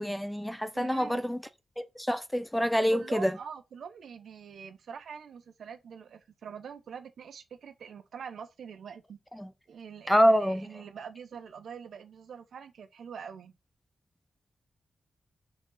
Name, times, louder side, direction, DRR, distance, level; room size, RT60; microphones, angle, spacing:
voice 1, 0.0-1.4 1.8-3.3 9.4-9.5 10.1-10.7, equal, 5° left, 0.5 m, -26 dB
voice 2, 0.7-1.2 2.9-9.2 9.7-13.5, right 7 dB, 80° right, 1.1 m, -44 dB
4.8 x 4.3 x 5.7 m
wide cardioid pair, 175°, 0 cm